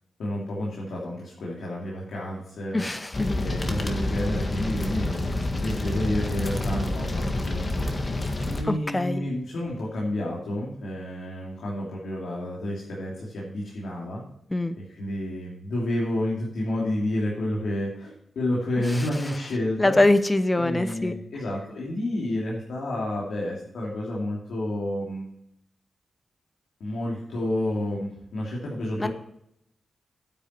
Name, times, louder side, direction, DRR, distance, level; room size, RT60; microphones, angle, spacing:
voice 1, 0.2-8.0 8.4-14.2 14.8-20.0 20.5-25.3 26.8-29.1, left 1 dB, 85° left, -5 dB, 2.8 m, -30 dB
voice 2, 2.7-3.4 8.7-9.2 14.5-14.8 19.8-21.1 29.0-29.1, left 2 dB, 20° left, 12 dB, 0.8 m, -23 dB
sound 1, 3.1-8.6, left 2 dB, 35° left, 1.6 m, -28 dB
9.5 x 9.0 x 4.5 m, 0.76 s
cardioid pair, 75°, 0 cm